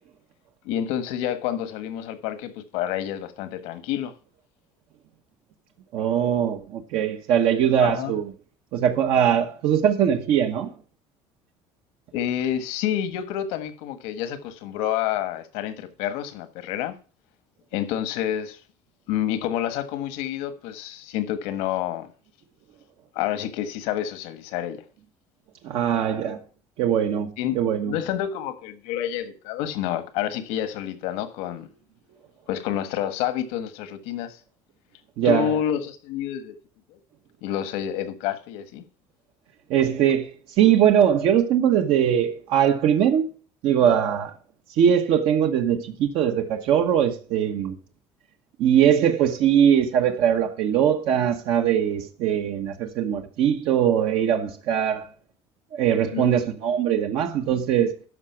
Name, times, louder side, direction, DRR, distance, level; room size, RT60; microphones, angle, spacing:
voice 1, 0.6-4.1 7.8-8.1 12.1-17.0 17.7-18.6 19.1-22.1 23.1-24.8 27.4-27.6 27.8-31.7 32.5-34.4 35.2-36.5 36.9-37.0 37.4-38.8 56.1-56.4, left 11 dB, 90° left, 1.4 m, -28 dB
voice 2, 5.9-8.3 8.7-10.7 25.6-26.4 26.8-27.9 35.2-35.6 39.7-40.3 40.6-43.3 43.6-44.3 44.8-47.8 48.6-55.1 55.7-58.0, right 9 dB, 65° right, 1.2 m, -21 dB
12.5 x 5.1 x 5.7 m
cardioid pair, 150°, 11 cm